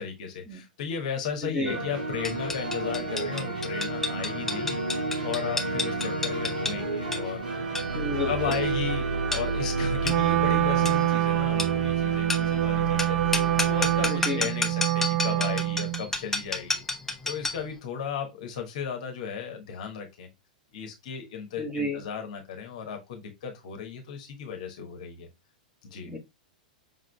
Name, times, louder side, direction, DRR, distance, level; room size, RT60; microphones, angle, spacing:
voice 1, 0.0-7.6 8.3-16.8 17.2-20.3 20.7-25.3 25.8-26.1, left 7 dB, 55° left, 4 dB, 1.0 m, -35 dB
sound 1, 1.6-14.1, right 3 dB, 70° right, 1.7 m, -30 dB
sound 2, 2.2-17.7, left 2 dB, 10° left, 0.7 m, -33 dB
voice 2, 7.9-8.6 14.0-14.5 21.6-22.0 26.1-26.2, left 1 dB, 10° right, 0 dB, 1.3 m, -31 dB
Wind instrument woodwind instrument, 10.0-16.0, right 17 dB, 40° right, 0.3 m, -26 dB
5.3 x 3.7 x 2.2 m, 0.22 s
figure-of-eight pair, 100°, 5 cm